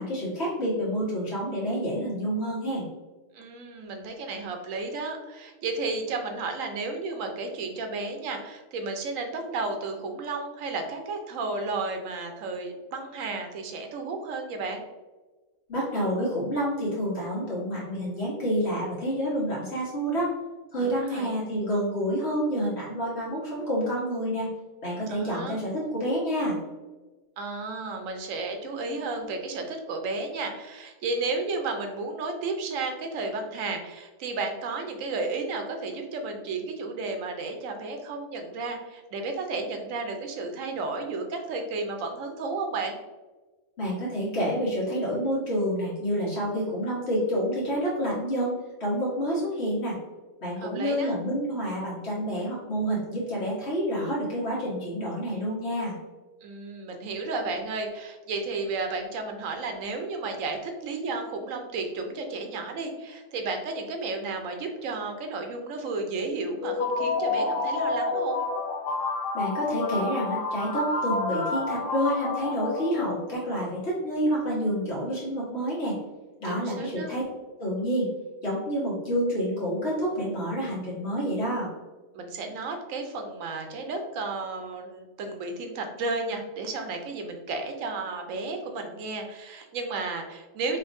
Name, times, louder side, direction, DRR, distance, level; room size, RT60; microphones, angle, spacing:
voice 1, 0.0-2.8 15.7-20.3 20.7-24.5 24.8-26.6 43.8-48.5 48.8-50.0 50.4-55.9 69.3-76.0 76.4-77.2 77.6-78.1 78.4-81.7, equal, 55° left, -6 dB, 1.6 m, -28 dB
voice 2, 3.3-14.8 20.8-21.4 25.1-25.6 27.4-43.0 50.6-51.1 56.4-68.4 76.4-77.1 82.1-90.8, right 3 dB, 80° right, 5 dB, 1.0 m, -33 dB
sound 1, 66.6-73.4, left 3 dB, 90° left, 1.1 m, -29 dB
4.4 x 2.9 x 2.6 m, 1.2 s
omnidirectional pair, 1.4 m